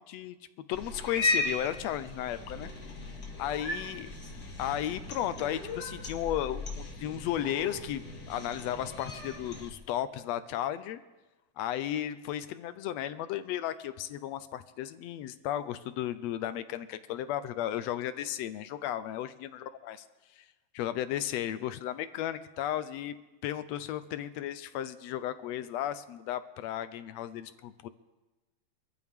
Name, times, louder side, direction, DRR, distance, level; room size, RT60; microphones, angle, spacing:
voice 1, 0.7-2.7 3.4-4.1 4.6-11.0 11.6-20.0 20.4-20.5 20.7-23.1 23.4-27.9, left 11 dB, 75° left, 12 dB, 1.7 m, -34 dB
Cat, 0.7-9.7, left 2 dB, 35° left, 2.7 m, -36 dB
24.0 x 14.5 x 3.6 m, 1.1 s
omnidirectional pair, 3.3 m